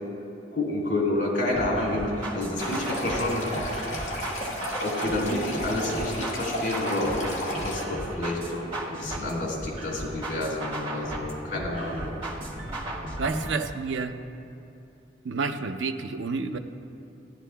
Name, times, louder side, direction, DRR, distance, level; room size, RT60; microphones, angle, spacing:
voice 1, 0.5-3.7 4.8-7.3 7.6-12.1, left 1 dB, 75° left, -4 dB, 2.4 m, -29 dB
sound 1, 1.5-13.5, right 1 dB, 30° right, 1.7 m, -36 dB
Stream, 2.6-7.8, equal, 40° left, 1.4 m, -33 dB
voice 2, 13.2-14.2 15.2-16.6, right 4 dB, 85° right, 8 dB, 0.5 m, -29 dB
16.0 x 10.5 x 2.3 m, 2.6 s
head